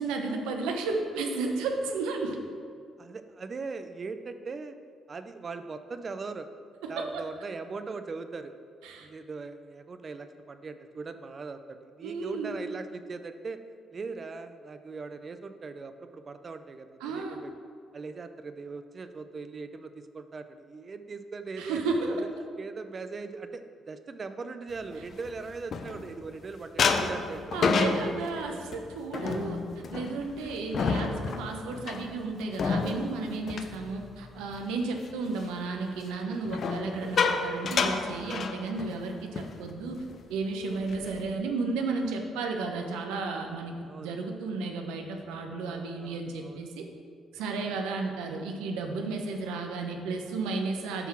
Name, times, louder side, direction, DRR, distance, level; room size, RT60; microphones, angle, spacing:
voice 1, 0.0-2.4 6.8-7.2 8.8-9.1 12.0-12.5 17.0-17.4 21.6-22.3 27.5-40.0 40.3-46.9 47.3-51.1, right 3 dB, 80° right, 3 dB, 0.8 m, -33 dB
voice 2, 3.0-4.8 5.1-6.5 6.9-8.5 9.0-13.6 13.9-17.5 17.9-22.2 22.6-27.5 40.8-41.1 43.8-44.1 45.6-46.7 47.6-47.8, right 4 dB, 45° right, 9 dB, 0.5 m, -40 dB
sound 1, 24.9-26.3 26.8-34.6 35.0-35.3 36.5-39.1 39.4-39.6 39.9-40.2 40.6-41.3, left 4 dB, 55° left, 0.6 m, -30 dB
8.2 x 3.6 x 6.0 m, 2.2 s
hypercardioid pair, 55°, 0 cm